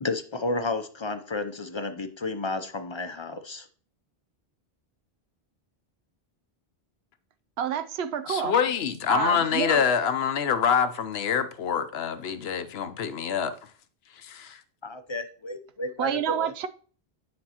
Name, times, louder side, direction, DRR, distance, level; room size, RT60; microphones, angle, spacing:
voice 1, 0.0-3.7 14.8-16.5, left 3 dB, 35° left, 0.5 m, -32 dB
voice 2, 7.6-8.5 9.1-9.8 16.0-16.7, right 9 dB, 85° right, 0.9 m, -28 dB
voice 3, 8.3-13.5 14.2-14.6, left 7 dB, 80° left, 0.9 m, -26 dB
9.5 x 5.2 x 2.9 m
omnidirectional pair, 1.0 m